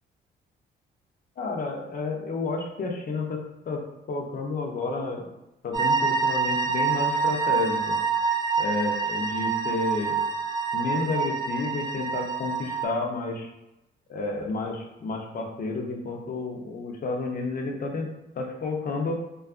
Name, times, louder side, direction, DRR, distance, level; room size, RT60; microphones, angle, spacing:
voice 1, 1.4-5.3 5.6-8.0 8.6-10.2 10.7-13.5 14.1-18.1 18.3-19.1, left 3 dB, 45° left, 1 dB, 0.6 m, -31 dB
sound 1, 5.7-12.9, right 5 dB, 20° right, 0.4 m, -26 dB
2.6 x 2.3 x 2.4 m, 0.93 s
cardioid pair, 90°, 20 cm